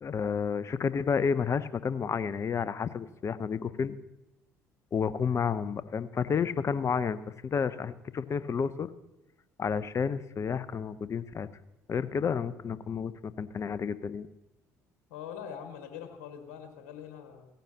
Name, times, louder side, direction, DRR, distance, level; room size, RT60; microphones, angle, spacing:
voice 1, 0.0-4.0 4.9-7.2 7.4-8.9 9.6-11.5 11.9-14.3, left 6 dB, 40° left, 15 dB, 0.8 m, -30 dB
voice 2, 15.1-17.5, left 8 dB, 75° left, 4 dB, 1.8 m, -43 dB
17.0 x 14.5 x 2.9 m, 0.97 s
hypercardioid pair, 60°, 7 cm